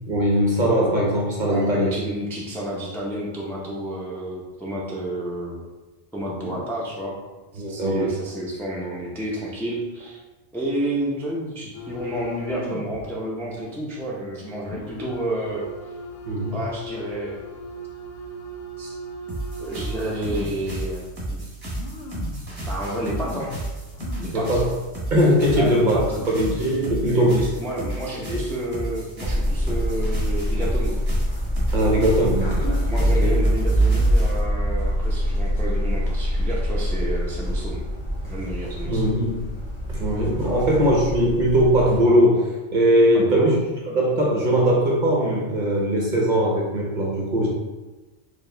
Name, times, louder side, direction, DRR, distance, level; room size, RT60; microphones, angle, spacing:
voice 1, 0.1-1.9 6.4-6.5 7.6-8.1 16.3-16.6 22.6-22.7 24.3-24.7 25.1-26.0 26.3-27.4 28.3-28.4 31.7-33.3 38.8-39.4 39.9-43.6 43.9-47.5, equal, 50° right, -3 dB, 0.7 m, -20 dB
voice 2, 1.5-5.6 6.1-7.2 7.5-10.2 10.5-15.7 16.5-17.4 18.8-18.9 19.6-21.4 22.7-23.5 24.2-24.6 25.6-26.2 26.6-31.0 32.9-37.8 38.2-39.1 40.4-40.6 43.1-43.6, right 1 dB, 5° left, -5 dB, 0.4 m, -30 dB
sound 1, 11.7-13.1 13.4-13.6 14.7-20.7 21.3-21.4 21.7-22.6 23.0-24.6 24.9-25.0 25.7-25.8 26.0-26.8 27.4-27.6, left 1 dB, 85° left, 0.9 m, -37 dB
sound 2, 19.3-34.4, right 2 dB, 20° right, 1.0 m, -33 dB
sound 3, 29.2-42.0, equal, 30° left, 1.6 m, -24 dB
4.6 x 2.3 x 3.3 m, 1.2 s
omnidirectional pair, 1.2 m